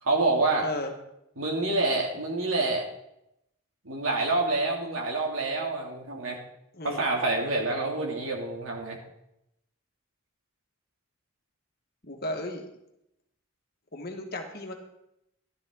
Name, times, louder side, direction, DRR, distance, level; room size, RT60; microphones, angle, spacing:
voice 1, 0.0-0.7 1.4-2.8 3.8-6.4 6.8-9.0, right 2 dB, 75° right, -1 dB, 2.9 m, -27 dB
voice 2, 12.0-12.6 13.9-14.7, left 1 dB, 45° left, 3 dB, 1.8 m, -34 dB
14.0 x 11.5 x 3.9 m, 0.83 s
head